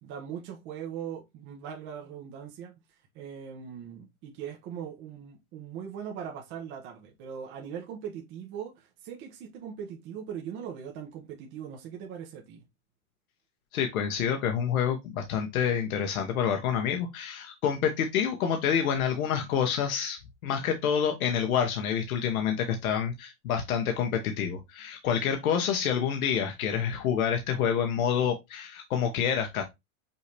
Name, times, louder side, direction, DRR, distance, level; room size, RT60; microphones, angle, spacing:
voice 1, 0.0-2.7 3.1-12.6, right 8 dB, 25° right, 0.9 m, -40 dB
voice 2, 13.7-29.6, left 8 dB, 80° left, 1.1 m, -28 dB
5.5 x 2.8 x 3.3 m
supercardioid pair, 160°, 42 cm